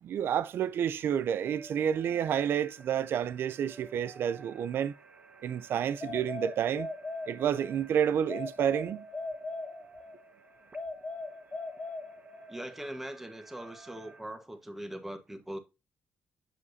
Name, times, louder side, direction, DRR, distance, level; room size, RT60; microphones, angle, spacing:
voice 1, 0.0-4.9 5.4-6.9 7.3-9.0, right 9 dB, 70° right, 0.5 m, -29 dB
sound 1, 1.4-14.2, right 4 dB, 35° right, 1.1 m, -54 dB
sound 2, 6.0-7.8 8.3-10.2 10.7-12.6, left 2 dB, 30° left, 1.1 m, -39 dB
voice 2, 12.5-15.6, right 1 dB, 5° right, 1.3 m, -41 dB
7.5 x 6.6 x 2.7 m
cardioid pair, 90°, 4 cm